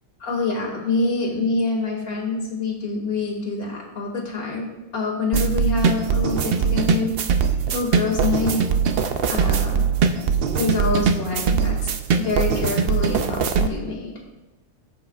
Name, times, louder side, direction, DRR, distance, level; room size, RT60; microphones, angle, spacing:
voice 1, 0.2-8.6 9.3-9.9 10.6-11.9 12.2-14.1, left 3 dB, 85° left, 0 dB, 2.6 m, -26 dB
sound 1, 5.3-13.7, right 6 dB, 55° right, 0.7 m, -21 dB
17.0 x 8.3 x 2.4 m, 1.1 s
omnidirectional pair, 1.5 m